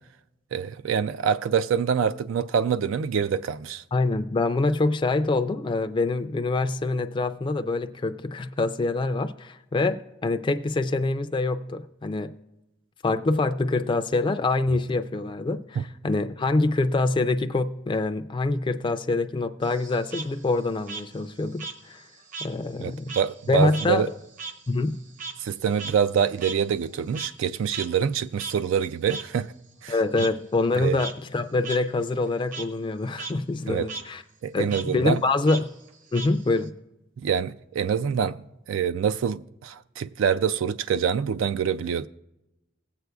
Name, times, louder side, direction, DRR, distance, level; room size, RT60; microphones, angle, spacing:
voice 1, 0.5-3.8 15.8-15.9 22.8-24.1 25.4-29.5 29.8-29.9 30.8-31.0 33.7-33.9 34.4-35.2 37.2-38.4 38.7-42.1, right 7 dB, 80° right, 0.3 m, -25 dB
voice 2, 3.9-12.3 13.0-22.1 22.4-23.1 23.5-24.1 24.7-25.0 29.9-34.2 34.5-35.7 36.1-36.7, left 3 dB, 25° left, 0.3 m, -25 dB
Frog, 19.6-22.6 22.9-27.5 27.7-27.9 28.4-28.5 29.1-29.2 30.2-30.3 30.8-31.1 31.6-31.8 32.1-32.7 33.1-33.3 33.6-34.0 34.7-34.8 35.5-36.7, right 4 dB, 40° right, 0.8 m, -37 dB
18.0 x 7.8 x 2.3 m
head